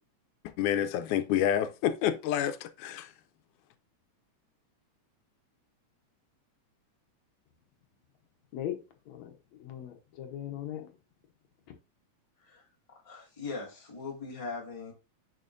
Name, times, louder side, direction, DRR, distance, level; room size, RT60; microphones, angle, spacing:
voice 1, 0.6-3.1, left 10 dB, 90° left, 2.1 m, -28 dB
voice 2, 8.5-10.9, left 11 dB, 70° left, 2.2 m, -39 dB
voice 3, 13.0-14.9, left 4 dB, 15° left, 1.7 m, -40 dB
9.6 x 5.0 x 2.6 m
omnidirectional pair, 3.4 m